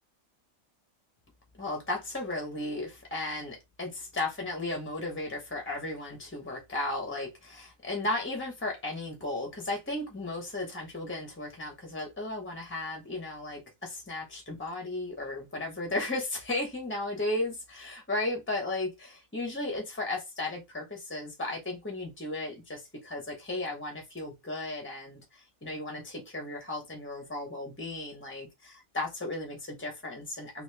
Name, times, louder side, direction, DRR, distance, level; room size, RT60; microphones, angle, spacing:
voice 1, 1.6-30.6, left 2 dB, 15° left, 0.4 m, -35 dB
2.9 x 2.4 x 3.2 m
omnidirectional pair, 1.5 m